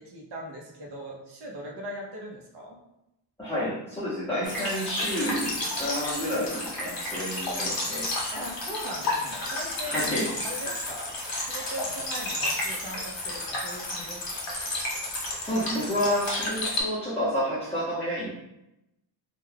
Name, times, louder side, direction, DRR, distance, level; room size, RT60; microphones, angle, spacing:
voice 1, 0.0-2.8 8.3-9.9 10.4-14.4, equal, 55° right, -1 dB, 0.7 m, -40 dB
voice 2, 3.4-8.1 9.8-10.3 15.4-18.3, equal, 5° left, -12 dB, 0.7 m, -29 dB
sound 1, 4.4-16.8, left 2 dB, 50° left, 1.0 m, -32 dB
2.3 x 2.3 x 3.2 m, 0.88 s
wide cardioid pair, 145°, 47 cm